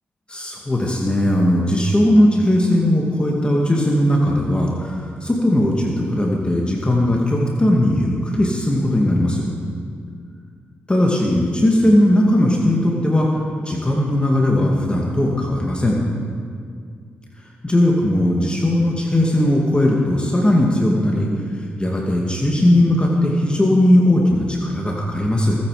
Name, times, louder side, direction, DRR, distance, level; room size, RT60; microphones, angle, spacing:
voice 1, 0.3-9.5 10.9-13.3 13.6-16.0 17.6-21.3 21.5-25.6, left 1 dB, 20° left, -2 dB, 2.4 m, -18 dB
20.5 x 9.5 x 5.1 m, 2.2 s
supercardioid pair, 50°, 5 cm